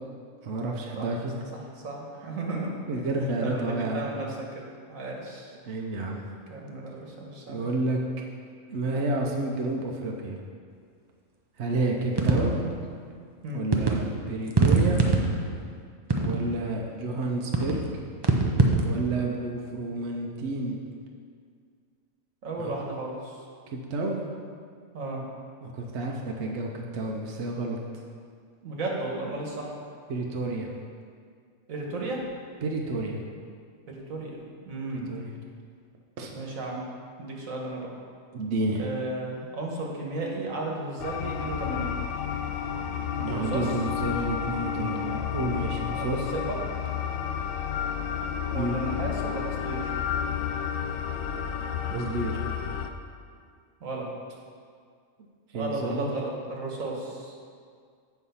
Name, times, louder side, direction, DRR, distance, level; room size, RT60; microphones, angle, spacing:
voice 1, 0.4-1.3 2.9-4.1 5.6-6.2 7.5-8.0 8.7-10.4 11.6-12.6 13.5-15.1 16.2-17.8 18.8-20.8 22.6-22.7 23.7-24.2 25.6-27.8 30.1-30.7 32.6-33.2 34.9-35.3 36.2-36.3 38.3-38.8 43.2-46.3 48.5-48.8 51.9-52.4 55.5-56.1, right 2 dB, 60° right, 0 dB, 1.0 m, -30 dB
voice 2, 1.8-2.7 3.4-5.5 6.5-7.7 12.3-12.6 13.4-13.6 22.4-23.4 24.9-25.2 28.6-29.7 31.7-32.2 33.9-35.1 36.3-36.8 37.2-37.9 38.8-41.9 43.2-43.7 46.0-46.6 48.5-49.9 53.8-54.1 55.5-57.3, right 2 dB, 80° right, -1 dB, 1.6 m, -34 dB
sound 1, 12.2-12.7 13.7-14.0 14.5-15.6 16.1-16.6 17.5-17.8 18.2-18.9, right 3 dB, 35° right, 0.4 m, -23 dB
sound 2, 41.0-52.9, left 8 dB, 80° left, 1.0 m, -31 dB
8.2 x 4.6 x 5.6 m, 2.1 s
omnidirectional pair, 1.4 m